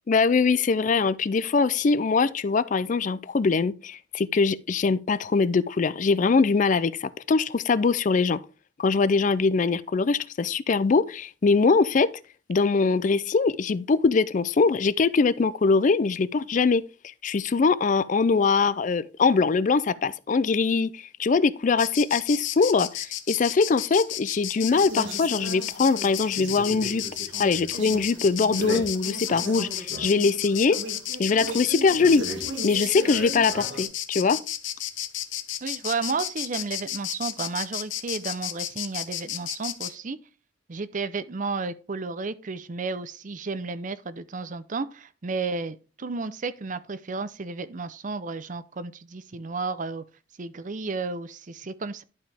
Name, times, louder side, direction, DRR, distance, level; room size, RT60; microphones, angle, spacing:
voice 1, 0.1-8.4 8.8-12.1 12.5-16.8 17.2-27.0 27.4-30.8 31.2-32.2 32.6-34.4, left 4 dB, 40° left, 0.4 m, -22 dB
Insect, 21.8-39.9, left 12 dB, 85° left, 0.8 m, -33 dB
sound 1, 24.7-33.8, right 1 dB, 90° right, 2.2 m, -37 dB
voice 2, 35.6-40.2 40.7-50.0 50.4-52.0, right 4 dB, 45° right, 0.6 m, -32 dB
11.5 x 5.0 x 3.4 m
head